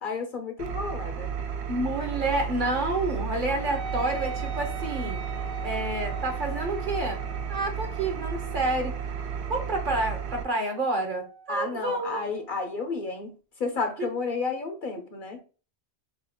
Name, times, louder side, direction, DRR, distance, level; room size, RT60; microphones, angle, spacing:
voice 1, 0.0-1.3 11.5-13.3 13.6-15.4, left 4 dB, 55° left, 6 dB, 0.7 m, -31 dB
Engine, 0.6-10.4, right 7 dB, 75° right, 0.9 m, -33 dB
voice 2, 1.7-5.2 5.6-7.2 7.5-8.9 9.5-12.2 14.0-14.1, right 2 dB, 50° right, 4 dB, 1.0 m, -29 dB
Wind instrument woodwind instrument, 3.6-12.5, right 3 dB, 30° right, 0.4 m, -42 dB
6.2 x 2.4 x 2.8 m, 0.35 s
omnidirectional pair, 1.1 m